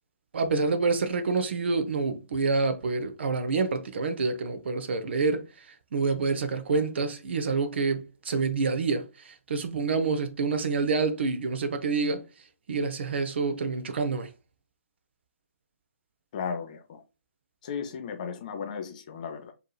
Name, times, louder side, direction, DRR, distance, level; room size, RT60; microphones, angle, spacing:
voice 1, 0.3-5.4 5.9-12.2 12.7-14.3, right 4 dB, 50° right, 0.6 m, -27 dB
voice 2, 16.3-17.0 17.6-19.5, left 6 dB, 30° left, 0.5 m, -35 dB
4.5 x 2.9 x 2.2 m
figure-of-eight pair, 135°, 8 cm